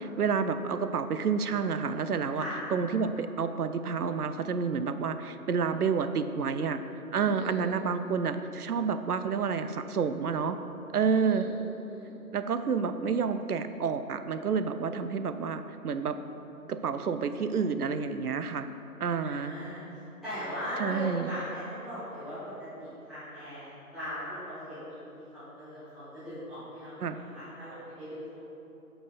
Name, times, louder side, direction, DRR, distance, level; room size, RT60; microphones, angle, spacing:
voice 1, 0.0-2.4 2.7-6.8 7.1-10.6 10.9-11.5 12.3-16.2 16.7-18.7 19.0-19.5 20.8-21.3 27.0-27.2, right 5 dB, 75° right, 10 dB, 0.5 m, -29 dB
voice 2, 7.2-7.6 11.0-12.1 19.2-19.8 20.2-28.2, equal, ahead, -20 dB, 0.8 m, -39 dB
5.4 x 4.4 x 5.6 m, 3.0 s
figure-of-eight pair, 170°, 46 cm